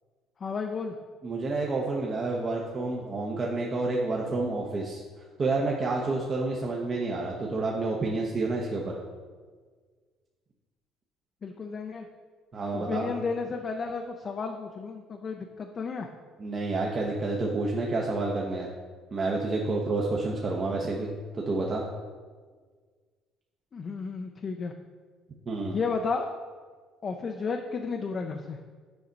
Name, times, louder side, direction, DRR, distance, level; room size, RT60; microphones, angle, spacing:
voice 1, 0.4-0.9 11.4-12.1 12.7-16.1 23.7-24.7 25.7-26.3 27.0-28.6, left 4 dB, 45° left, 3 dB, 0.5 m, -32 dB
voice 2, 1.2-5.0 5.4-9.0 12.5-13.1 16.4-18.7 19.1-21.1 21.3-21.8 25.5-25.8, right 3 dB, 40° right, -2 dB, 0.9 m, -29 dB
6.9 x 5.0 x 4.0 m, 1.5 s
supercardioid pair, 65°, 0 cm